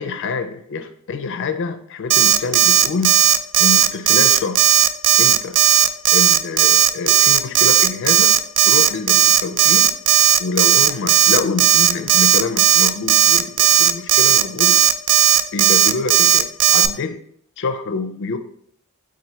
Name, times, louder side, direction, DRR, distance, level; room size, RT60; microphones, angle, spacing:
voice 1, 0.0-3.2 3.6-4.6 5.2-5.6 6.1-8.4 8.7-9.9 10.4-14.8 15.5-17.2 17.6-18.4, left 4 dB, 55° left, 0.4 m, -26 dB
Alarm, 2.1-16.9, right 11 dB, 75° right, 0.3 m, -14 dB
4.0 x 2.6 x 4.2 m
head